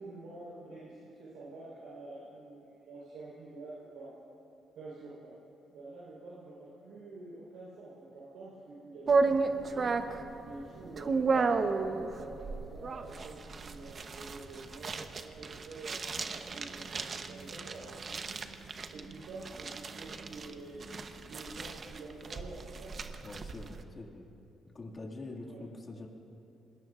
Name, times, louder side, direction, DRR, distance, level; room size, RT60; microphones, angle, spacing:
voice 1, 0.0-4.1 4.7-5.4 5.7-10.0 10.4-18.4 18.9-20.8 21.3-22.9 25.4-25.6, right 2 dB, 85° right, -7 dB, 4.0 m, -47 dB
sound 1, 9.1-23.8, right 4 dB, 45° right, 0.9 m, -34 dB
voice 2, 23.2-24.2 24.7-26.1, left 2 dB, 35° left, -1 dB, 2.1 m, -44 dB
26.5 x 20.5 x 2.5 m, 2.8 s
cardioid pair, 90°, 0 cm